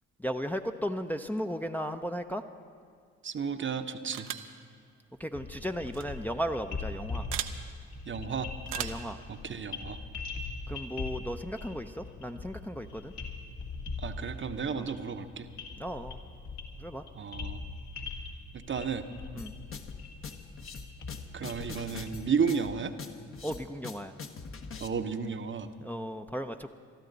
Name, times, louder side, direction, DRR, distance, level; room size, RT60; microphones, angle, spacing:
voice 1, 0.2-2.4 5.2-7.2 8.8-9.2 10.7-13.1 14.8-14.9 15.8-16.2 16.8-17.0 19.3-19.5 23.4-24.1 25.8-26.8, equal, 5° left, 5 dB, 0.7 m, -35 dB
voice 2, 3.2-4.3 8.1-8.5 9.3-10.0 14.0-15.5 17.1-17.6 18.5-19.0 21.3-22.9 24.8-25.7, right 6 dB, 40° right, 8 dB, 0.9 m, -32 dB
sound 1, 4.1-4.6 5.9-6.0 7.3-7.6 8.7-9.1, right 12 dB, 80° right, 0.7 m, -36 dB
sound 2, 5.3-22.1, left 4 dB, 60° left, 2.3 m, -41 dB
sound 3, 19.4-24.9, left 5 dB, 45° left, 1.2 m, -43 dB
22.0 x 13.0 x 4.0 m, 2.1 s
hypercardioid pair, 50°, 31 cm